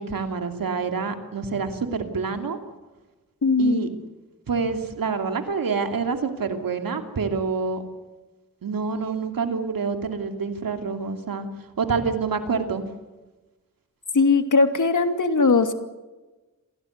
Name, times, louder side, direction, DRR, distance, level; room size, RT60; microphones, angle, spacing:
voice 1, 0.0-2.6 3.6-3.9 4.5-7.8 8.6-11.5 11.8-12.8, right 5 dB, 90° right, 6 dB, 2.9 m, -27 dB
voice 2, 3.4-3.9 14.1-15.7, left 4 dB, 65° left, 7 dB, 2.8 m, -19 dB
27.0 x 18.0 x 8.2 m, 1.2 s
cardioid pair, 65°, 33 cm